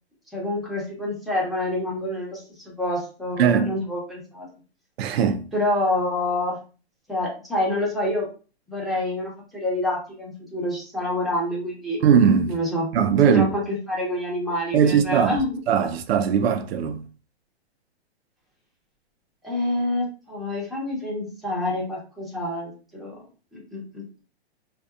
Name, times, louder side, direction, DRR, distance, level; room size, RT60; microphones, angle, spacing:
voice 1, 0.3-4.5 5.5-6.6 7.1-8.3 8.7-12.0 12.5-12.9 13.2-15.6 19.4-23.2 23.5-24.2, left 1 dB, ahead, 0.8 m, -27 dB
voice 2, 3.4-3.7 5.0-5.4 12.0-12.6 12.9-13.5 14.7-15.4 15.7-17.0, right 7 dB, 70° right, 0.5 m, -19 dB
2.6 x 2.2 x 2.4 m
hypercardioid pair, 135°, 33 cm